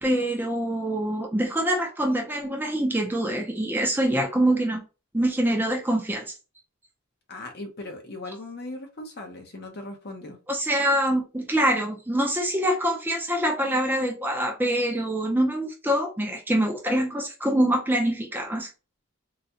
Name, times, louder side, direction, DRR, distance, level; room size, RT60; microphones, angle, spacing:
voice 1, 0.0-4.8 5.1-6.3 10.5-18.7, right 1 dB, 10° right, 0.5 m, -25 dB
voice 2, 7.3-10.4, left 2 dB, 45° left, 0.8 m, -38 dB
3.9 x 2.2 x 2.8 m
head